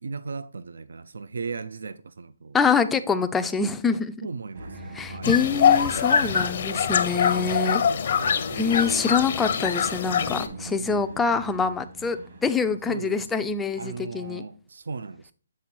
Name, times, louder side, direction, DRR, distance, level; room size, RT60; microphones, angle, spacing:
voice 1, 0.0-2.6 4.2-5.3 6.2-6.5 7.1-7.5 7.8-8.8 10.3-11.0 12.9-13.5 13.7-15.3, right 4 dB, 75° right, 0.3 m, -38 dB
voice 2, 2.5-4.1 4.9-7.8 8.5-14.4, left 5 dB, 10° left, 0.3 m, -25 dB
sound 1, 4.5-14.4, right 2 dB, 55° right, 1.4 m, -43 dB
sound 2, 5.2-10.5, left 7 dB, 50° left, 0.6 m, -23 dB
7.4 x 3.8 x 4.3 m
hypercardioid pair, 155°, 0 cm